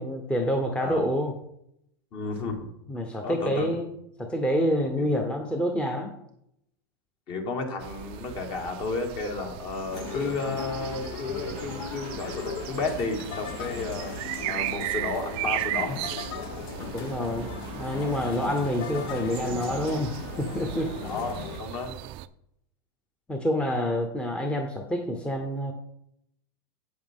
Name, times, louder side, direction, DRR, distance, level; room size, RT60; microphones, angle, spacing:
voice 1, 0.0-1.3 2.9-3.9 4.2-6.1 16.9-20.9 23.3-25.7, equal, 10° left, 3 dB, 0.9 m, -27 dB
voice 2, 2.1-2.7 3.2-3.7 5.0-5.1 7.3-14.1 14.5-16.0 16.8-16.9 21.0-21.9, left 3 dB, 40° left, 3 dB, 2.0 m, -32 dB
sound 1, 7.8-22.3, right 16 dB, 45° right, 0.4 m, -37 dB
sound 2, 9.9-21.6, left 7 dB, 65° left, 0.9 m, -38 dB
8.5 x 7.6 x 3.7 m, 0.76 s
hypercardioid pair, 120°, 13 cm